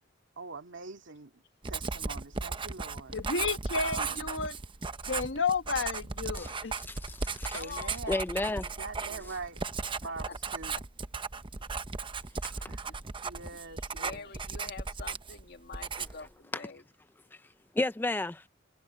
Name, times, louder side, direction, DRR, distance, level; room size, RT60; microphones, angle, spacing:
voice 1, 0.4-3.2 3.8-4.3 7.5-9.6 10.0-10.8 12.6-12.9 13.2-14.3, right 4 dB, 90° right, 2.1 m, -43 dB
Writing, 1.6-15.4 15.7-16.3, right 4 dB, 25° right, 0.8 m, -36 dB
voice 2, 3.1-4.5 5.1-6.7, left 4 dB, 75° left, 1.5 m, -31 dB
voice 3, 6.8-7.6 8.1-8.6 12.4-12.7 16.5-16.6 17.8-18.5, left 2 dB, 10° left, 0.3 m, -32 dB
voice 4, 7.5-8.2 8.5-8.7 9.0-9.2 10.0-10.3 12.9-13.0 13.6-16.8, left 4 dB, 60° left, 2.0 m, -45 dB
head